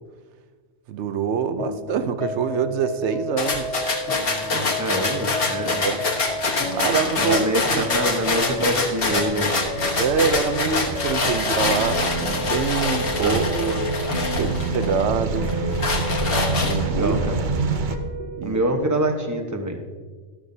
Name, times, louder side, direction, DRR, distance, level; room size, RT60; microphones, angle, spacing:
voice 1, 0.9-3.8 5.8-6.0 6.7-7.5 7.7-7.8 10.0-13.9 14.3-15.6 16.6-17.2 18.4-18.6, right 6 dB, 85° right, 11 dB, 0.9 m, -25 dB
sound 1, 1.6-19.1, left 1 dB, 80° left, 1.5 m, -32 dB
sound 2, 3.4-15.0 15.5-17.1, left 3 dB, 55° left, 1.5 m, -25 dB
voice 2, 4.5-5.9 7.2-9.5 13.2-13.4 16.8-17.4 18.4-19.8, right 1 dB, 15° right, 4 dB, 1.0 m, -25 dB
sound 3, 5.4-18.0, right 4 dB, 50° right, 0.8 m, -29 dB
12.5 x 12.5 x 2.7 m, 1.5 s
omnidirectional pair, 1.1 m